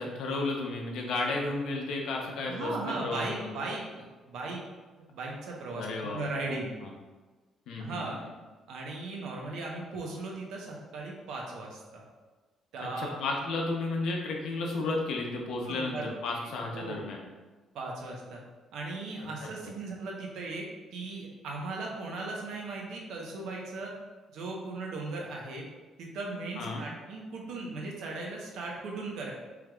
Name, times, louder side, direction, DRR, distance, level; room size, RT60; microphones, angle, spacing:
voice 1, 0.0-3.6 5.7-6.9 7.7-8.2 13.0-17.2 19.6-19.7 26.6-26.8, left 3 dB, 75° left, 0 dB, 0.7 m, -33 dB
voice 2, 2.5-3.9 4.3-4.6 5.1-6.7 7.8-8.2 8.7-12.0 12.7-13.2 15.7-16.3 16.7-17.0 17.7-18.4 18.7-20.6 20.9-23.9 24.3-25.6 26.0-29.3, right 3 dB, 75° right, -1 dB, 0.9 m, -37 dB
4.6 x 3.4 x 2.3 m, 1.3 s
cardioid pair, 150°, 0 cm